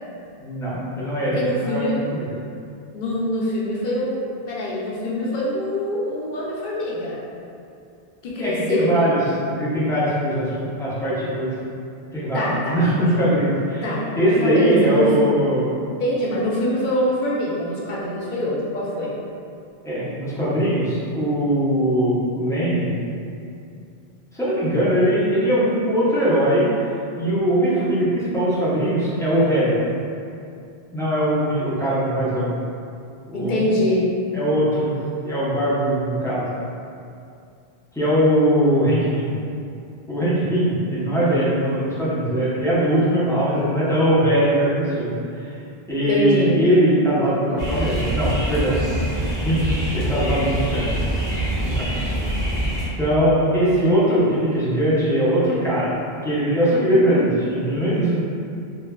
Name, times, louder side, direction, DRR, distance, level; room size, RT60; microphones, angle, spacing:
voice 1, 0.4-2.3 8.4-9.2 9.5-11.5 12.1-13.9 14.1-15.7 19.8-22.9 24.4-26.7 27.2-29.8 30.9-32.5 33.3-33.6 34.3-34.9 35.2-36.4 37.9-39.3 40.1-45.5 45.9-48.8 49.4-50.9 51.6-51.9 53.0-58.2, equal, 5° left, -10 dB, 0.4 m, -21 dB
voice 2, 1.2-2.0 2.9-7.2 8.2-8.9 12.3-13.1 13.4-13.5 13.8-15.1 16.0-19.1 33.3-34.1 46.1-46.6, left 1 dB, 60° left, -5 dB, 0.6 m, -24 dB
sound 1, 47.6-52.9, right 1 dB, 45° right, 0.7 m, -25 dB
3.1 x 2.1 x 2.2 m, 2.5 s
omnidirectional pair, 1.0 m